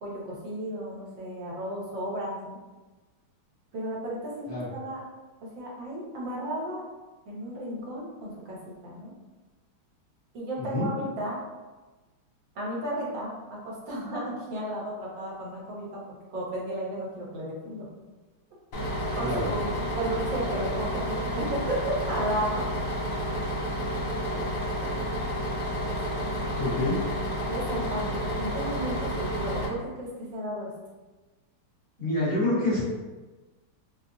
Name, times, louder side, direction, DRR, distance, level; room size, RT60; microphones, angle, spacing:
voice 1, 0.0-2.6 3.7-5.0 5.4-6.8 7.3-9.1 10.3-11.4 12.5-17.9 19.1-19.7 19.9-21.8 22.1-22.7 25.7-26.3 27.5-30.7, right 1 dB, 70° right, -4 dB, 1.5 m, -34 dB
voice 2, 10.6-10.9 19.2-19.5 24.8-24.9 26.6-27.0 32.0-32.8, left 2 dB, 40° left, -12 dB, 1.9 m, -27 dB
Bus, 18.7-29.7, equal, 80° left, 0.7 m, -30 dB
4.2 x 2.2 x 2.6 m, 1.2 s
omnidirectional pair, 2.2 m